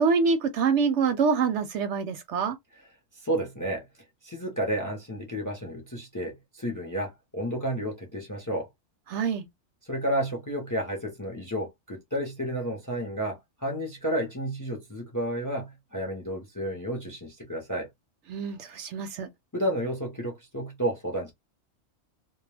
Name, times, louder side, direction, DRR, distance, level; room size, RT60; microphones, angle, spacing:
voice 1, 0.0-2.6 9.1-9.5 18.3-19.3, right 5 dB, 70° right, 0.8 m, -25 dB
voice 2, 3.2-3.8 4.2-8.7 9.9-17.9 19.5-21.3, right 1 dB, 20° left, 0.5 m, -31 dB
2.2 x 2.2 x 3.2 m
omnidirectional pair, 1.4 m